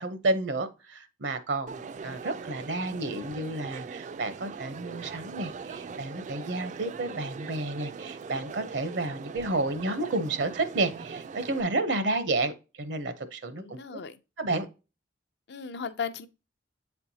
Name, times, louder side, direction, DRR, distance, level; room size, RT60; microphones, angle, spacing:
voice 1, 0.0-12.5 12.8-14.0 14.4-14.7, right 2 dB, 70° right, 0.7 m, -31 dB
Crowd, 1.7-11.6, right 5 dB, 40° right, 0.3 m, -41 dB
voice 2, 13.6-14.2 15.5-16.3, left 6 dB, 60° left, 0.5 m, -36 dB
8.0 x 4.4 x 2.7 m
head